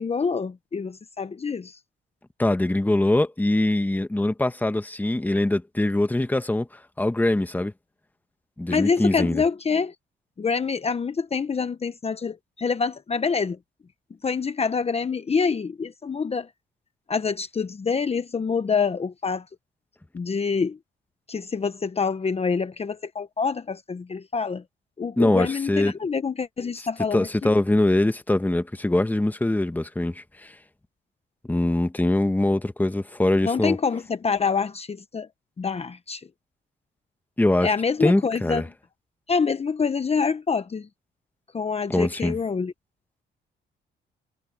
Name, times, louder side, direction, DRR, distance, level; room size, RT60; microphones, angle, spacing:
voice 1, 0.0-1.8 8.7-9.9 10.4-13.6 14.2-16.5 17.1-19.5 20.1-20.8 21.3-24.6 25.0-27.5 33.4-35.3 35.6-36.3 37.6-38.6 39.3-40.9 41.5-42.7, left 5 dB, 30° left, 1.1 m, -26 dB
voice 2, 2.4-6.7 7.0-7.7 8.6-9.4 25.2-25.9 27.1-30.5 31.5-33.8 37.4-37.7 38.0-38.6 41.9-42.4, left 1 dB, 10° left, 1.4 m, -23 dB
cardioid pair, 90°, 20 cm